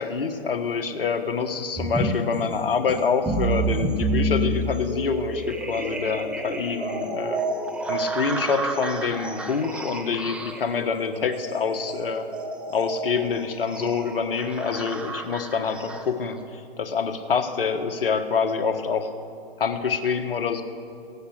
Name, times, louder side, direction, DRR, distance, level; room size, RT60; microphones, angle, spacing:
voice 1, 0.0-7.4 7.9-12.3 12.7-19.1 19.6-20.6, left 5 dB, 65° left, 7 dB, 1.4 m, -26 dB
sound 1, 1.8-16.4, right 2 dB, 5° right, 0.5 m, -30 dB
17.0 x 10.0 x 6.5 m, 2.5 s
figure-of-eight pair, 125°, 30 cm